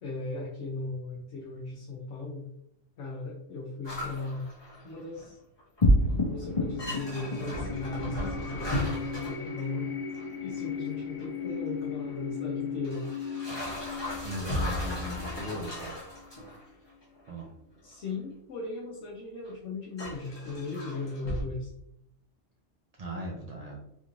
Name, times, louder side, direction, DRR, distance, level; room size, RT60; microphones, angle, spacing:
voice 1, 0.0-2.5 3.0-4.5 4.8-5.4 6.2-9.9 10.4-13.0 17.8-21.7, left 3 dB, 65° left, -3 dB, 1.0 m, -37 dB
sound 1, 3.8-5.3 5.6-6.1 6.4-6.5 6.8-10.2 11.2-11.3 12.1-12.2 12.8-16.6 17.0-17.3 18.1-18.2 19.4-19.5 20.0-21.4, left 1 dB, 20° left, 1.1 m, -36 dB
sound 2, 5.8-16.5, left 2 dB, 50° left, 0.4 m, -32 dB
voice 2, 14.2-16.0 17.3-17.5 23.0-23.8, equal, 65° right, -1 dB, 0.3 m, -38 dB
3.5 x 3.0 x 2.5 m, 0.77 s
omnidirectional pair, 1.4 m